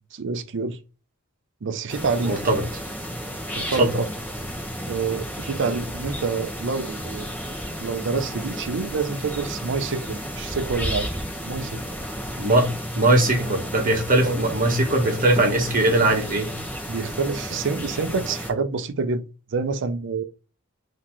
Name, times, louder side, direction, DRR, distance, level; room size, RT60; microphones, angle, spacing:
voice 1, 0.1-0.8 1.6-2.3 3.5-4.1 4.9-7.3 7.8-11.1 11.4-11.8 14.2-14.4 16.9-19.2 19.5-20.2, right 4 dB, 60° right, 0.5 m, -27 dB
sound 1, 1.9-18.5, equal, 10° left, 1.0 m, -33 dB
voice 2, 2.2-2.6 3.8-3.9 12.3-16.5, right 2 dB, 40° right, 1.1 m, -20 dB
4.0 x 2.8 x 4.4 m
head